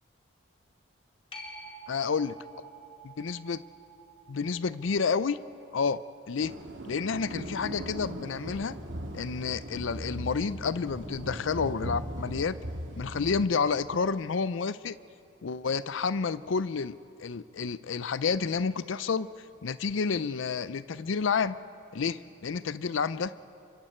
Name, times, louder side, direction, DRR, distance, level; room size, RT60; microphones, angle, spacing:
sound 1, 1.3-8.5 14.0-14.1, right 2 dB, 30° left, 2.2 m, -51 dB
voice 1, 1.9-2.4 3.0-3.6 4.3-5.4 5.7-6.0 6.3-6.5 6.8-8.8 9.1-12.6 13.0-15.0 15.4-19.3 19.6-21.6 21.9-23.3, left 5 dB, 70° left, 15 dB, 0.5 m, -30 dB
sound 2, 6.4-13.5, right 1 dB, 70° right, 2.0 m, -39 dB
29.0 x 25.0 x 4.4 m, 2.5 s
head